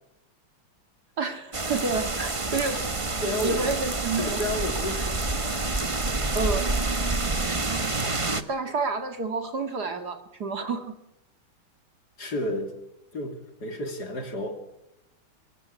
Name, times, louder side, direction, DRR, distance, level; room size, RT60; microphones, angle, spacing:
voice 1, 1.2-2.9 3.4-4.4 6.4-6.7 8.3-10.9, right 4 dB, 50° right, 8 dB, 2.5 m, -29 dB
sound 1, 1.5-8.4, right 3 dB, 20° right, 0.9 m, -28 dB
voice 2, 3.2-3.7 4.2-5.7 12.2-12.7 13.1-14.6, left 1 dB, 50° left, 6 dB, 3.5 m, -31 dB
23.5 x 16.0 x 9.7 m, 0.88 s
omnidirectional pair, 2.3 m